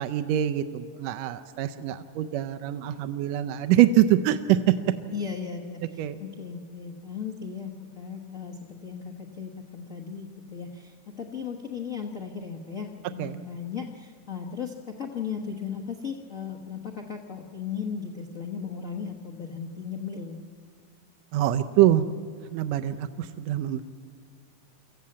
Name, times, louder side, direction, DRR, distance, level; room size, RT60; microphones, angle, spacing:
voice 1, 0.0-4.7 6.0-6.2 13.2-13.4 21.3-22.1 22.5-23.8, right 12 dB, 75° right, 8 dB, 1.6 m, -24 dB
voice 2, 5.1-20.4, left 6 dB, 85° left, 0 dB, 0.7 m, -36 dB
24.0 x 14.0 x 8.6 m, 2.2 s
omnidirectional pair, 3.6 m